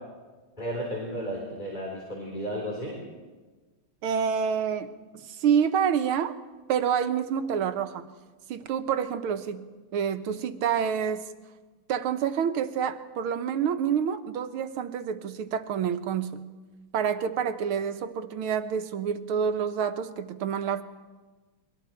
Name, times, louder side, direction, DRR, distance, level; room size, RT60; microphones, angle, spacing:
voice 1, 0.6-3.0, equal, 20° left, -1 dB, 3.7 m, -33 dB
voice 2, 4.0-6.4 6.7-8.1 8.5-9.7 9.9-11.3 11.9-16.4 16.9-20.8, right 7 dB, 90° right, 9 dB, 1.9 m, -28 dB
29.5 x 23.0 x 4.5 m, 1.3 s
omnidirectional pair, 2.3 m